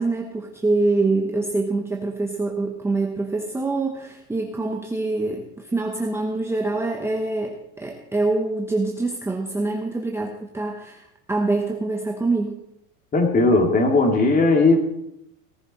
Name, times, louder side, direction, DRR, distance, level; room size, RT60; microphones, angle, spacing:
voice 1, 0.0-11.0 11.3-12.6, right 3 dB, 5° right, 2 dB, 1.0 m, -25 dB
voice 2, 13.1-14.8, left 2 dB, 20° left, 3 dB, 2.3 m, -17 dB
18.5 x 11.0 x 4.1 m, 0.82 s
supercardioid pair, 140°, 40 cm